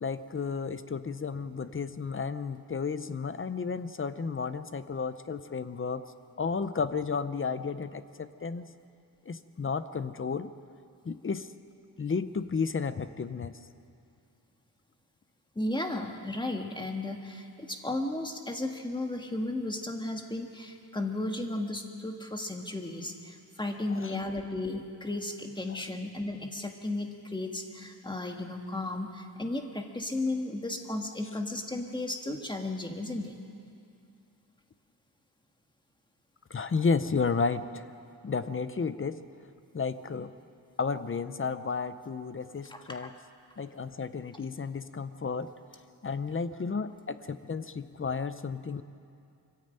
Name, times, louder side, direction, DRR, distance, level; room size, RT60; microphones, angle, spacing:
voice 1, 0.0-6.0 6.4-8.7 9.3-10.5 11.0-11.5 12.0-13.5 23.9-24.2 36.5-37.8 38.2-39.2 39.7-40.3 40.8-43.1 43.6-45.5 46.0-48.8, left 5 dB, 30° left, 12 dB, 0.6 m, -32 dB
voice 2, 15.5-33.4 42.7-43.1, left 2 dB, 10° left, 3 dB, 1.5 m, -34 dB
23.5 x 15.0 x 8.9 m, 2.5 s
wide cardioid pair, 180°, 39 cm